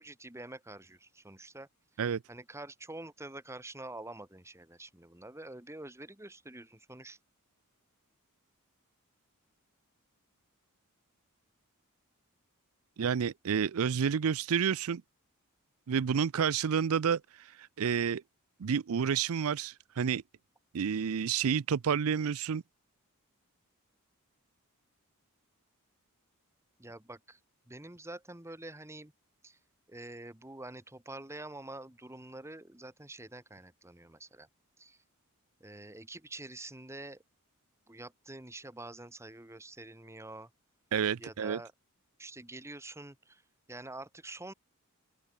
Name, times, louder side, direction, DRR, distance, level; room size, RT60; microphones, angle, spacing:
voice 1, 0.0-1.7 2.3-7.2 26.8-27.4 27.7-29.1 29.4-29.6 29.9-34.5 34.8-35.0 35.6-37.2 37.9-40.5 41.2-41.7 42.2-43.4 43.7-44.5, right 2 dB, 10° right, 1.7 m, -46 dB
voice 2, 13.0-15.0 15.9-18.2 18.6-20.2 20.7-22.6 40.9-41.6, right 7 dB, 70° right, 0.5 m, -30 dB
open air
head